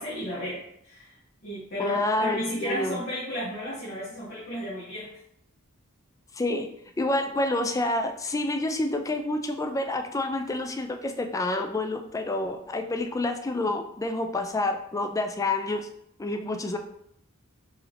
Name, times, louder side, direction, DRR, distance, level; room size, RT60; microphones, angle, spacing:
voice 1, 0.0-5.2, equal, 45° left, -6 dB, 1.0 m, -34 dB
voice 2, 1.8-3.0 6.3-6.7 7.0-15.9 16.2-16.8, left 2 dB, 15° left, 5 dB, 0.3 m, -28 dB
4.7 x 2.7 x 3.4 m, 0.74 s
head